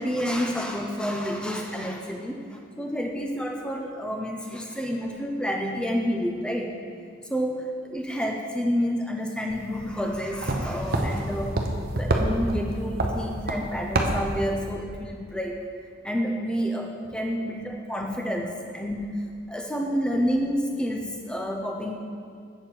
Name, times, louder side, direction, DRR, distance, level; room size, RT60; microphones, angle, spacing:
voice 1, 0.0-6.7 7.3-11.6 11.8-15.6 16.0-19.1 19.5-21.9, equal, 5° left, 2 dB, 0.6 m, -29 dB
sound 1, 9.5-14.7, right 1 dB, 45° right, 0.7 m, -28 dB
7.6 x 6.9 x 4.4 m, 2.2 s
head